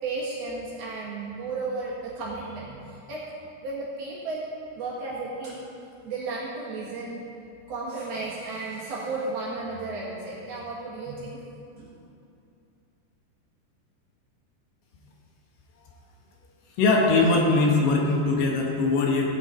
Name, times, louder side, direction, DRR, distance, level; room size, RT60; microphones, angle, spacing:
voice 1, 0.0-3.2 3.6-4.5 4.8-5.7 6.0-7.2 7.7-11.4 11.8-12.0, right 3 dB, 65° right, -6 dB, 3.3 m, -33 dB
voice 2, 16.8-19.3, left 3 dB, 75° left, -1 dB, 3.1 m, -21 dB
16.0 x 9.7 x 4.2 m, 2.6 s
omnidirectional pair, 5.0 m